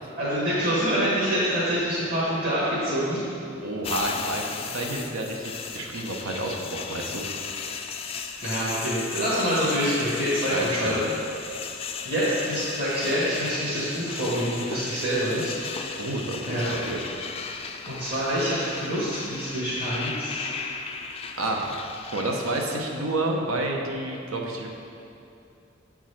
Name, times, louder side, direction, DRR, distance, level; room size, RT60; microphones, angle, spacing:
voice 1, 0.2-3.2 8.4-11.0 12.1-15.6 16.5-16.8 17.9-20.5, equal, 50° right, -11 dB, 1.8 m, -26 dB
voice 2, 3.6-7.2 10.5-11.0 15.9-17.0 21.4-21.7 22.1-24.7, right 2 dB, 90° right, 1 dB, 0.9 m, -29 dB
sound 1, 3.8-22.8, left 5 dB, 30° left, 0.3 m, -36 dB
7.4 x 4.7 x 5.7 m, 2.7 s
head